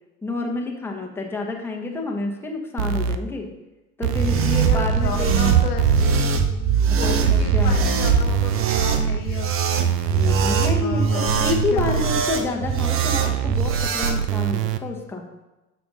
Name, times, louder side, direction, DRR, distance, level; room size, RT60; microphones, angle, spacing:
voice 1, 0.2-3.5 4.0-5.4 6.9-7.8 10.1-15.3, left 3 dB, 5° left, 0 dB, 1.0 m, -29 dB
sound 1, 2.8-3.2 4.0-5.0 5.3-6.2 7.0-9.2 9.8-10.8 11.3-12.2 12.8-14.8, right 8 dB, 80° right, 0.6 m, -24 dB
sound 2, 4.0-14.2, right 6 dB, 30° right, 0.7 m, -22 dB
voice 2, 4.6-10.0 10.8-12.0 12.4-12.9, left 6 dB, 70° left, 3 dB, 0.9 m, -33 dB
12.0 x 5.9 x 2.5 m, 1.1 s
figure-of-eight pair, 70°, 48 cm